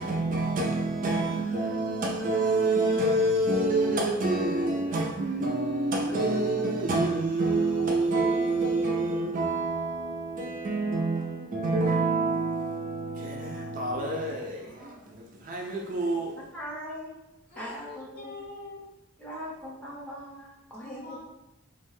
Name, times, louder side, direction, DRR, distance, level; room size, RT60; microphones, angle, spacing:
voice 1, 0.0-16.4, right 2 dB, 40° right, 0.4 m, -27 dB
voice 2, 14.5-15.1 15.9-16.3 17.5-18.9 20.8-21.2, left 2 dB, 55° left, 0.7 m, -45 dB
voice 3, 16.5-17.2 17.5-18.4 19.2-21.2, equal, 5° left, 0.7 m, -40 dB
2.4 x 2.2 x 3.1 m
head